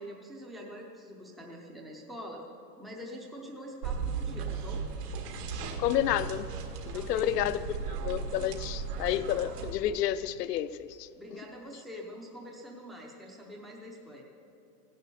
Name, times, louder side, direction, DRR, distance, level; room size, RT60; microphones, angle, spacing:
voice 1, 0.0-2.4 2.8-4.8 6.9-7.7 11.2-14.2, equal, ahead, 0.6 m, -44 dB
sound 1, 3.8-9.7, right 5 dB, 65° right, 2.1 m, -36 dB
voice 2, 5.8-6.5 6.9-7.6 8.0-11.1, left 12 dB, 70° left, 0.8 m, -30 dB
16.5 x 11.0 x 6.9 m
supercardioid pair, 160°, 50 cm